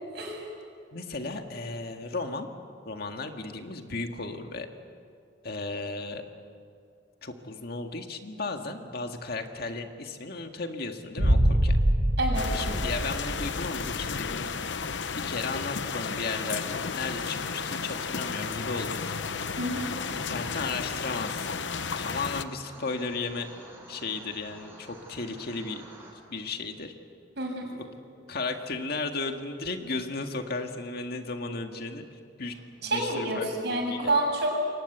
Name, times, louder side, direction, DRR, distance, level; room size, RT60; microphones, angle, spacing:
voice 1, 0.1-0.5 12.2-12.5 19.6-19.9 27.4-27.7 32.8-34.5, right 1 dB, 65° right, 1 dB, 6.9 m, -28 dB
voice 2, 0.9-2.5 2.9-4.7 5.4-6.2 7.2-11.8 12.5-14.6 15.2-19.2 20.1-21.5 21.8-23.5 23.9-25.8 26.3-26.9 27.8-27.9 28.3-32.1 32.4-34.1, left 3 dB, 55° left, 5 dB, 1.9 m, -35 dB
sound 1, 11.2-14.1, right 1 dB, 80° right, 3.0 m, -25 dB
sound 2, 12.3-22.4, left 5 dB, 75° left, 0.9 m, -33 dB
sound 3, 16.2-26.1, right 1 dB, 10° right, 7.3 m, -48 dB
28.5 x 23.5 x 8.1 m, 2.3 s
head